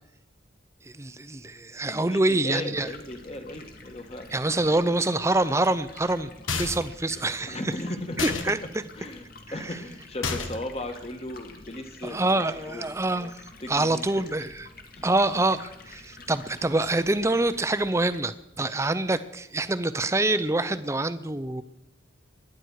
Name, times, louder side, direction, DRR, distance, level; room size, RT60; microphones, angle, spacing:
voice 1, 0.8-2.9 4.3-7.6 8.2-8.6 9.6-9.7 12.0-13.3 13.7-14.7 15.0-21.6, right 2 dB, 15° right, 13 dB, 0.6 m, -26 dB
voice 2, 1.9-4.3 4.7-4.8 7.4-8.6 9.0-12.2 12.6-12.9 13.6-14.3 15.0-15.1 16.2-16.3, left 1 dB, 30° left, 6 dB, 1.5 m, -37 dB
Stream, 2.7-18.2, left 3 dB, 45° left, 1.9 m, -48 dB
sound 1, 6.5-7.0 8.2-8.5 10.2-10.7, left 5 dB, 80° left, 1.4 m, -30 dB
23.0 x 10.5 x 4.8 m, 0.93 s
head